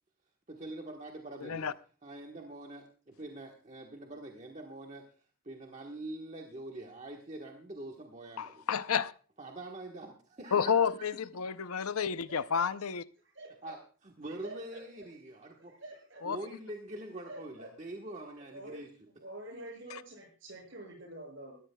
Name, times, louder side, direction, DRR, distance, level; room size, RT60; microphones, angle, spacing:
voice 1, 0.5-1.7 2.0-5.1 5.4-8.6 9.4-10.9 13.6-15.7 16.2-18.9, right 1 dB, 30° right, 1.3 m, -44 dB
voice 2, 1.4-1.7 8.4-9.1 10.5-13.0 16.2-16.4 19.9-20.0, left 7 dB, 85° left, 0.6 m, -30 dB
voice 3, 12.3-12.7 13.3-13.7 14.4-14.8 15.6-16.2 17.3-17.7 18.5-18.8 19.2-21.6, right 1 dB, 55° right, 6.4 m, -47 dB
21.0 x 14.0 x 2.3 m
head